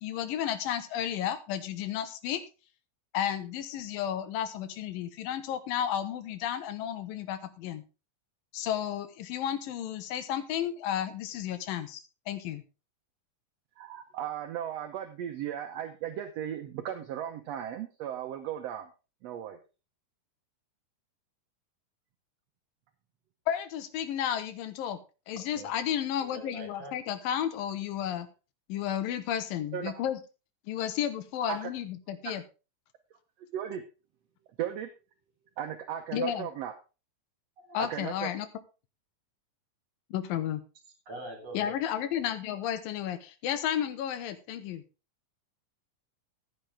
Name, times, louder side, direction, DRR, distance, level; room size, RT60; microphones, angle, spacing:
voice 1, 0.0-2.4 3.1-7.8 8.5-12.0 12.3-12.6 23.5-25.0 25.3-28.3 28.7-30.2 30.7-32.4 36.1-36.5 37.7-38.5 40.1-40.6 41.5-44.8, left 10 dB, 85° left, 11 dB, 2.9 m, -32 dB
voice 2, 13.8-18.9 19.2-19.6 29.7-30.0 31.5-31.7 32.2-32.4 33.5-33.8 34.6-34.9 35.6-36.7 37.8-38.3, right 10 dB, 70° right, 7 dB, 1.6 m, -36 dB
voice 3, 26.2-26.9 37.6-37.8 41.1-41.7, right 1 dB, 45° right, 3 dB, 4.5 m, -43 dB
15.0 x 8.9 x 3.5 m, 0.31 s
omnidirectional pair, 3.9 m